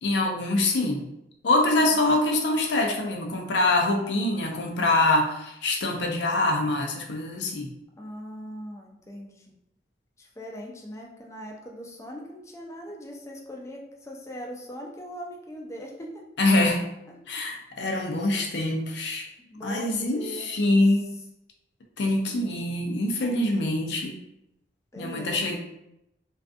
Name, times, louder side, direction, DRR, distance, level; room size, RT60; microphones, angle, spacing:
voice 1, 0.0-1.1 1.4-7.7 16.4-16.9 17.3-19.2 19.6-21.1 22.0-24.2 25.0-25.6, left 2 dB, 70° left, 2 dB, 0.5 m, -24 dB
voice 2, 1.8-2.2 8.0-9.5 10.2-16.1 17.3-17.4 17.8-17.9 19.5-20.8 24.9-25.6, equal, 15° left, 0 dB, 0.4 m, -41 dB
2.4 x 2.3 x 2.5 m, 0.84 s
head